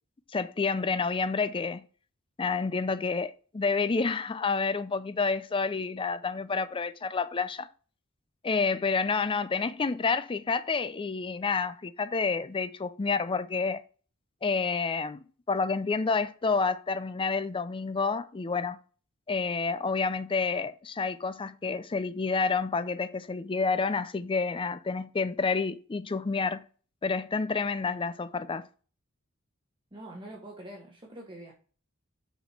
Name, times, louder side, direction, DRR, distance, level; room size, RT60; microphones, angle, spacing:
voice 1, 0.3-1.8 2.4-7.7 8.4-13.8 14.4-18.8 19.3-26.6 27.0-28.7, left 4 dB, 25° left, 0.4 m, -29 dB
voice 2, 29.9-31.5, right 1 dB, 25° right, 1.3 m, -44 dB
6.5 x 5.1 x 4.4 m
head